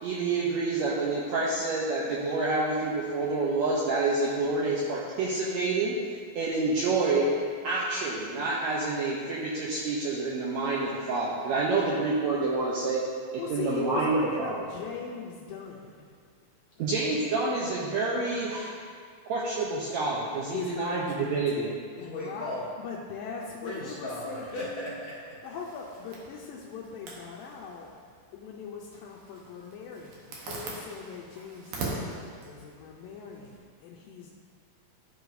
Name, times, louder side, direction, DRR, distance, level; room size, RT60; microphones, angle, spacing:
voice 1, 0.0-6.0 6.3-7.3 7.6-13.0 13.3-14.7 16.8-18.7 19.3-21.7, right 3 dB, 85° right, -5 dB, 1.5 m, -28 dB
voice 2, 13.4-16.1 20.5-22.5 22.8-24.8 25.4-27.9 28.3-34.3, left 6 dB, 85° left, -4 dB, 2.3 m, -40 dB
voice 3, 22.0-22.6 23.6-25.4, left 1 dB, 50° left, -9 dB, 2.3 m, -37 dB
Zipper (clothing), 25.4-33.6, right 3 dB, 65° right, 1.8 m, -42 dB
12.5 x 4.7 x 2.6 m, 2.1 s
omnidirectional pair, 4.0 m